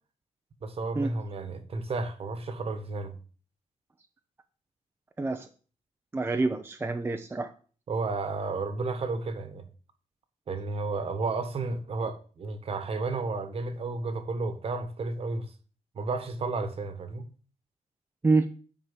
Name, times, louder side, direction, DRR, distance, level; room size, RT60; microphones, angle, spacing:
voice 1, 0.6-3.2 7.9-9.6 10.5-15.5 15.9-17.2, right 3 dB, 50° right, 1.5 m, -32 dB
voice 2, 5.2-5.5 6.1-7.5 18.2-18.5, right 3 dB, 20° right, 0.7 m, -27 dB
9.7 x 4.4 x 7.4 m
wide cardioid pair, 135°, 13 cm